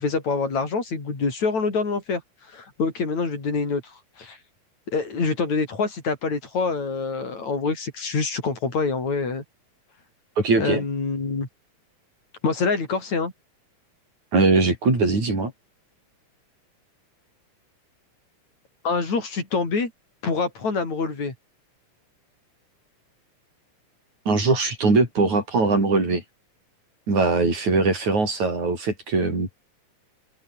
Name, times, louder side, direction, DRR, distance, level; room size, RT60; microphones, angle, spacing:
voice 1, 0.0-2.2 2.5-4.4 4.9-9.4 10.6-11.5 12.4-13.3 18.8-19.9 20.2-21.3, left 4 dB, 65° left, 7.3 m, -26 dB
voice 2, 10.4-10.8 14.3-15.5 24.3-26.2 27.1-29.5, right 3 dB, 70° right, 9.6 m, -21 dB
open air
omnidirectional pair, 3.5 m